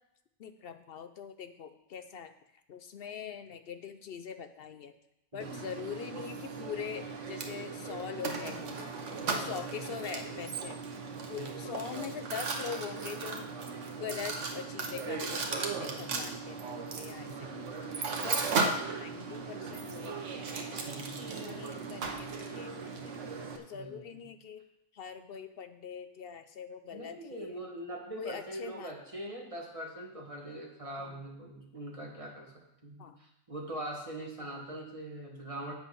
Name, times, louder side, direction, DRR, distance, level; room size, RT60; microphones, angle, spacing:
voice 1, 0.4-2.3 2.7-4.9 5.3-8.9 9.3-10.8 11.3-13.5 14.0-17.3 18.2-18.5 18.9-23.1 23.6-24.7 24.9-27.6 28.2-28.9 31.0-31.1 33.0-33.2 34.4-34.9, left 7 dB, 60° left, 8 dB, 0.7 m, -43 dB
voice 2, 5.3-5.7 9.3-9.8 11.3-11.8 15.8-16.4 16.9-18.0 20.8-21.6 23.7-24.3 26.9-35.7, right 1 dB, 25° right, -1 dB, 1.7 m, -43 dB
Mechanisms, 5.4-23.6, right 4 dB, 75° right, 1.3 m, -37 dB
8.0 x 7.6 x 5.4 m, 0.84 s
omnidirectional pair, 1.3 m